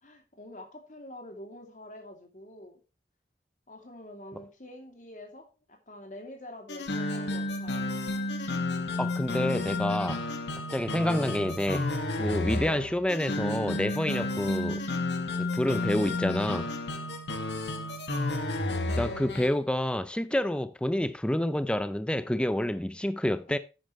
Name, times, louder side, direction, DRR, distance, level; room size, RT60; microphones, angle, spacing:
voice 1, 0.0-2.8 3.7-8.1 15.6-15.9 23.5-23.6, left 1 dB, 45° left, 2.7 m, -47 dB
sound 1, 6.7-19.5, left 2 dB, 85° left, 1.8 m, -31 dB
voice 2, 9.0-10.2 10.7-11.9 12.2-14.8 15.4-16.7 18.9-23.6, left 1 dB, 5° left, 0.5 m, -28 dB
10.5 x 8.9 x 3.1 m
head